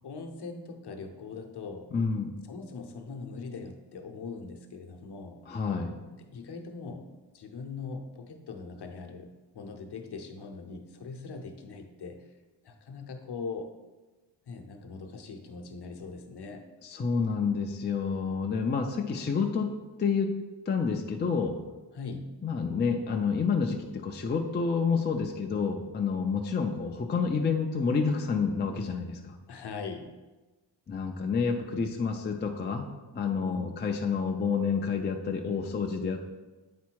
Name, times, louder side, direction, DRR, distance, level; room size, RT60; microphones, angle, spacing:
voice 1, 0.0-1.9 2.5-5.4 6.1-7.1 7.3-12.2 12.6-13.7 14.5-16.7 21.9-22.3 29.5-30.1 33.4-33.9, left 4 dB, 55° left, 4 dB, 0.8 m, -41 dB
voice 2, 1.9-2.4 5.5-6.0 16.8-20.3 20.7-21.6 22.4-29.3 30.9-32.9 33.1-36.3, left 5 dB, 25° left, 2 dB, 0.4 m, -29 dB
8.4 x 4.2 x 4.6 m, 1.2 s
wide cardioid pair, 180°, 47 cm